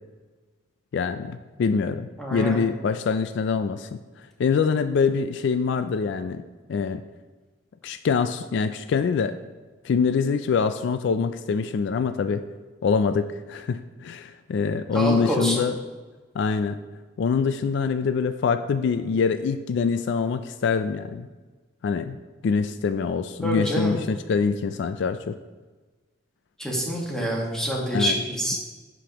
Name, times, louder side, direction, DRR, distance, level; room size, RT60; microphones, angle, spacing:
voice 1, 0.9-4.0 4.4-6.4 6.7-7.0 7.8-9.3 9.8-12.4 12.8-15.7 16.4-16.8 17.2-21.3 21.8-22.2 22.4-25.4 27.9-28.2, left 5 dB, 65° left, 11 dB, 0.3 m, -24 dB
voice 2, 2.2-2.6 14.9-15.6 23.4-24.0 26.6-28.6, equal, 5° left, -3 dB, 1.5 m, -26 dB
11.0 x 5.0 x 3.0 m, 1.3 s
head